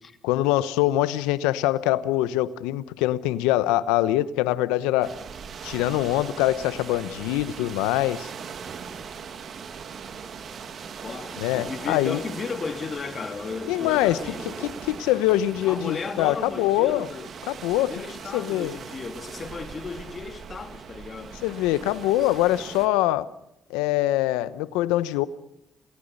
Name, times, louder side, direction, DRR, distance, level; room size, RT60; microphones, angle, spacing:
voice 1, 0.2-5.1 5.6-8.3 11.4-12.2 13.7-14.2 14.8-17.1 17.5-17.9 18.3-18.8 21.4-23.3 23.7-25.3, left 15 dB, 90° left, 0.9 m, -23 dB
sound 1, 5.0-22.9, right 6 dB, 60° right, 2.4 m, -40 dB
voice 2, 11.0-14.8 15.6-17.3 17.9-21.4, left 5 dB, 45° left, 2.8 m, -35 dB
28.0 x 19.0 x 6.7 m
supercardioid pair, 60°, 0 cm